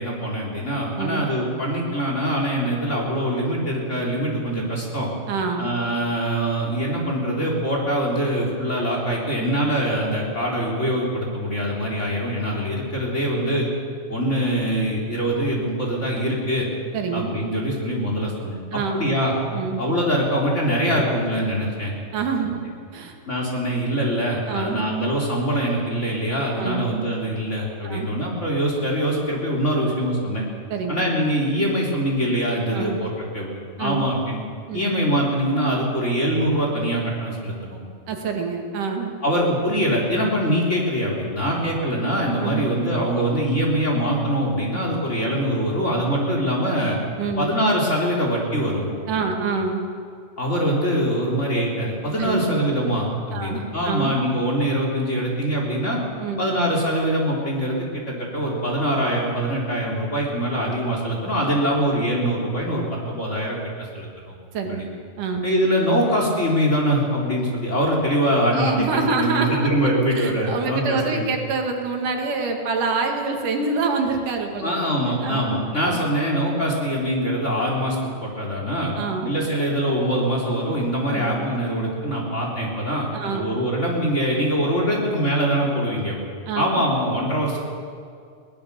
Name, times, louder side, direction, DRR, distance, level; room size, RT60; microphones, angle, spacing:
voice 1, 0.0-5.1 5.6-13.7 14.1-16.7 17.1-19.3 19.8-21.9 23.3-30.4 30.9-34.4 34.7-37.8 39.2-47.0 47.4-48.9 50.4-56.0 56.4-64.1 64.7-64.8 65.4-71.3 74.6-78.9 79.2-86.2 86.6-87.6, equal, 20° left, -2 dB, 3.8 m, -23 dB
voice 2, 5.3-5.7 16.9-17.3 18.7-19.1 19.5-19.8 22.1-22.6 22.9-23.1 24.5-24.8 26.6-26.9 27.8-28.1 30.7-31.0 32.7-33.0 33.8-34.1 34.7-34.9 38.1-39.1 40.5-40.6 42.4-42.6 47.2-47.5 49.1-49.8 52.2-52.6 53.3-54.1 56.2-56.4 64.5-64.9 65.2-65.4 68.5-74.7 75.0-76.0 79.0-79.3 81.1-81.5 83.1-83.5 86.5-86.8, right 4 dB, 80° right, 3 dB, 3.6 m, -26 dB
21.5 x 19.0 x 6.9 m, 2.3 s
omnidirectional pair, 3.6 m